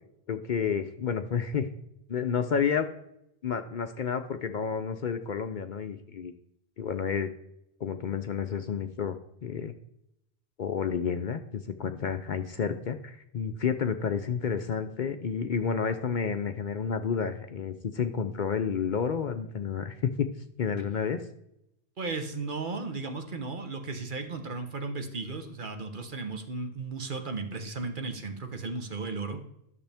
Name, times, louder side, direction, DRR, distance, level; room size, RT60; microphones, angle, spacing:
voice 1, 0.3-1.7 2.1-2.9 3.4-6.3 6.8-7.3 7.8-9.7 10.6-20.3 20.6-21.2, left 6 dB, 55° left, 8 dB, 0.6 m, -30 dB
voice 2, 22.0-29.4, right 3 dB, 50° right, 6 dB, 1.2 m, -35 dB
11.5 x 6.8 x 3.5 m, 0.79 s
omnidirectional pair, 1.1 m